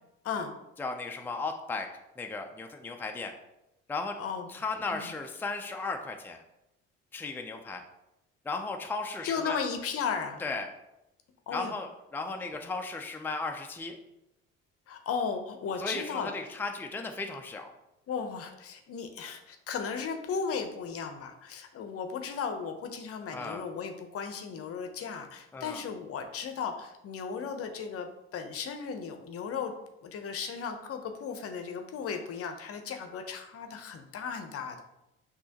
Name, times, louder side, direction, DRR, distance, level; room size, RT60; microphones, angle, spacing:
voice 1, 0.2-0.6 4.2-4.5 4.9-5.1 9.2-10.4 11.5-11.7 14.9-16.3 18.1-29.7 30.0-34.8, left 6 dB, 55° left, 6 dB, 0.7 m, -35 dB
voice 2, 0.8-1.9 2.2-3.3 3.9-4.2 4.5-6.4 7.1-7.8 8.4-9.6 10.4-10.7 11.5-14.0 15.8-17.7 23.3-23.7 25.5-25.8, left 3 dB, 5° left, 4 dB, 0.5 m, -35 dB
6.1 x 2.9 x 2.9 m, 0.89 s
supercardioid pair, 75°, 29 cm